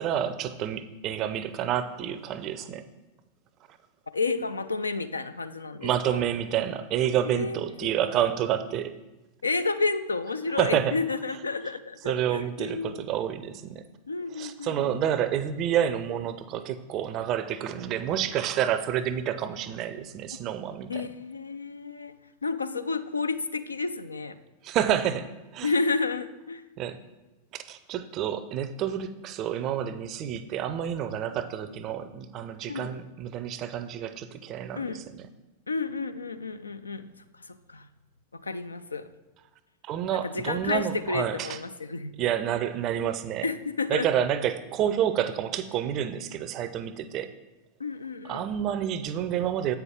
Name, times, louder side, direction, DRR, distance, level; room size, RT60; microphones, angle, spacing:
voice 1, 0.0-2.9 5.8-9.0 10.6-10.9 12.0-13.9 14.4-21.1 24.6-25.3 25.5-25.7 26.8-27.0 27.5-35.3 39.8-41.6 42.2-43.5 43.9-47.3 48.2-49.7, right 10 dB, 35° right, 13 dB, 0.5 m, -29 dB
voice 2, 4.1-6.2 7.2-7.6 9.4-13.1 14.1-15.0 20.9-22.1 22.4-24.4 25.6-26.6 32.7-32.9 34.8-35.1 35.7-37.9 38.3-39.1 40.2-42.1 43.4-44.1 47.8-48.4, left 4 dB, 75° left, 12 dB, 0.4 m, -31 dB
8.0 x 5.8 x 3.6 m, 1.1 s
figure-of-eight pair, 90°, 0 cm